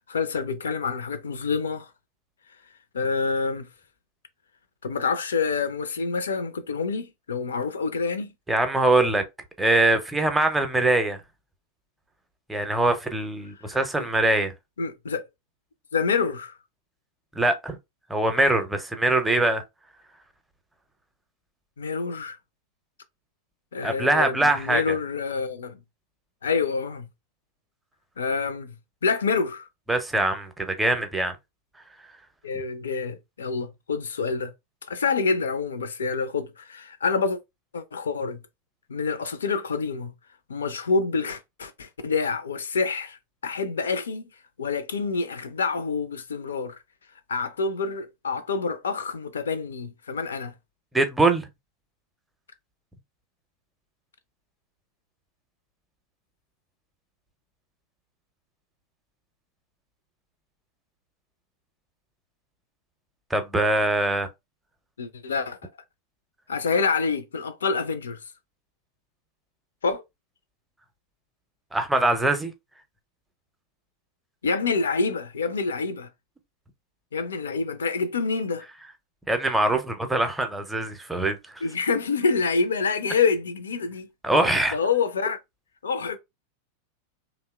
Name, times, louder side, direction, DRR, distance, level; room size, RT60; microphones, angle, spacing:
voice 1, 0.1-1.9 2.9-3.7 4.8-8.3 13.6-14.1 14.8-15.2 15.9-16.6 21.8-22.4 23.7-25.8 26.4-27.1 28.2-28.7 29.0-29.7 32.4-34.5 34.9-37.4 37.7-38.4 38.9-40.1 40.5-43.2 43.4-44.3 44.6-46.8 47.3-50.5 65.0-65.7 66.5-68.2 69.8-70.0 74.4-76.1 77.1-78.7 81.6-84.1 84.7-85.4 85.8-86.2, left 4 dB, 70° left, 0.3 m, -27 dB
voice 2, 8.5-9.2 9.6-11.2 12.5-14.5 17.4-17.8 18.1-19.6 23.8-25.0 29.9-31.4 50.9-51.5 63.3-64.3 71.7-72.5 79.3-81.6 84.2-84.8, right 2 dB, 5° right, 0.5 m, -23 dB
2.8 x 2.0 x 2.3 m
figure-of-eight pair, 90°, 0 cm